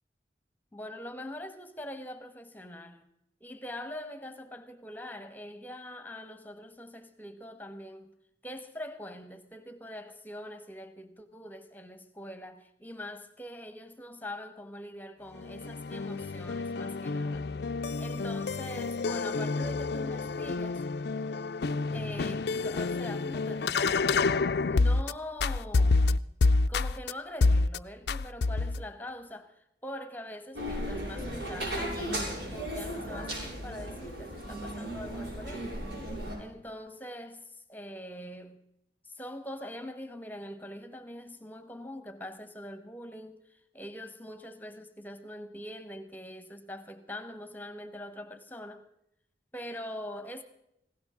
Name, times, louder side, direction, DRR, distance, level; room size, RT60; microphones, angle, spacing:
voice 1, 0.7-3.0 3.4-8.1 8.4-17.5 18.0-20.8 21.9-24.0 24.6-26.2 26.7-29.6 29.8-35.8 36.4-38.6 39.1-48.9 49.5-50.4, left 1 dB, 10° left, 1.1 m, -43 dB
sound 1, 15.3-25.1 25.4-27.1 27.4-27.8 28.1-28.8, left 3 dB, 65° left, 0.4 m, -28 dB
sound 2, 30.5-36.4, equal, 80° right, 7.3 m, -36 dB
18.5 x 17.0 x 3.7 m
head